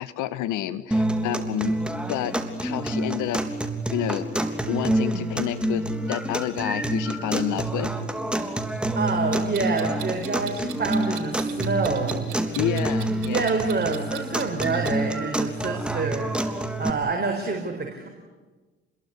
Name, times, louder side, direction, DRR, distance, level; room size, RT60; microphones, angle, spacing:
voice 1, 0.0-1.8 2.1-4.3 4.6-7.9 12.5-13.5, left 12 dB, 70° left, 14 dB, 1.6 m, -29 dB
sound 1, 0.9-16.9, right 1 dB, 5° right, 3.5 m, -27 dB
voice 2, 8.9-12.3 13.3-18.1, right 4 dB, 30° right, 2 dB, 4.9 m, -27 dB
Clock, 9.3-15.0, right 13 dB, 75° right, 2.9 m, -40 dB
28.0 x 21.5 x 9.8 m, 1.3 s
hypercardioid pair, 55°, 31 cm